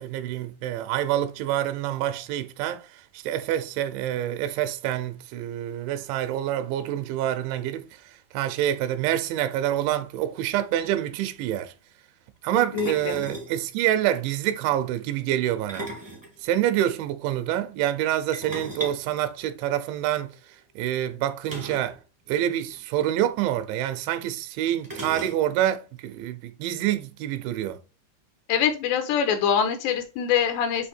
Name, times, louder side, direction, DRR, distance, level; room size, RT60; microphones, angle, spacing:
voice 1, 0.0-7.9 8.3-11.7 12.4-15.9 16.4-20.3 20.8-22.0 22.3-27.8, right 12 dB, 90° right, 3.0 m, -27 dB
sound 1, 10.4-10.5 10.7-11.0 12.8-13.6 15.5-16.9 18.3-20.0 21.5-22.0 22.2-22.3 22.6-22.8 23.8-23.9 24.8-25.7, right 1 dB, 30° right, 0.3 m, -37 dB
voice 2, 12.5-13.2 28.5-30.9, left 8 dB, 80° left, 3.0 m, -24 dB
8.2 x 2.8 x 4.2 m
omnidirectional pair, 5.1 m